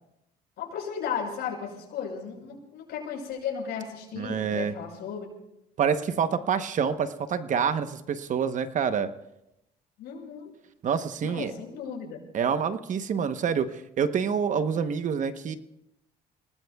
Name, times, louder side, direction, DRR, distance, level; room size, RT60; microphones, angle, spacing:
voice 1, 0.6-5.3 10.0-10.5 11.2-12.2, left 7 dB, 75° left, -1 dB, 6.2 m, -35 dB
voice 2, 4.2-4.7 5.8-9.1 10.8-11.5 12.3-15.6, right 7 dB, 50° right, 10 dB, 1.0 m, -27 dB
29.5 x 19.0 x 2.3 m, 0.85 s
cardioid pair, 110°, 17 cm